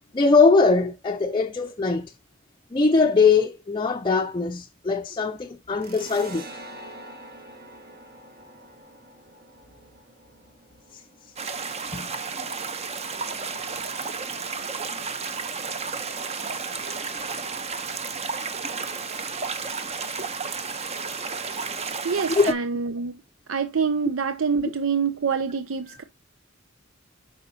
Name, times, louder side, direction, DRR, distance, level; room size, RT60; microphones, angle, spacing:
voice 1, 0.1-2.1 2.7-6.5 11.9-12.1 14.9-15.0 22.3-22.5 25.9-26.0, left 4 dB, 25° left, 0.5 m, -21 dB
sound 1, 5.8-13.0, right 1 dB, 50° right, 1.6 m, -45 dB
sound 2, 11.4-22.5, right 5 dB, 30° right, 0.9 m, -32 dB
voice 2, 22.0-23.2 23.5-26.0, right 5 dB, 75° right, 0.6 m, -26 dB
8.3 x 5.7 x 2.8 m
head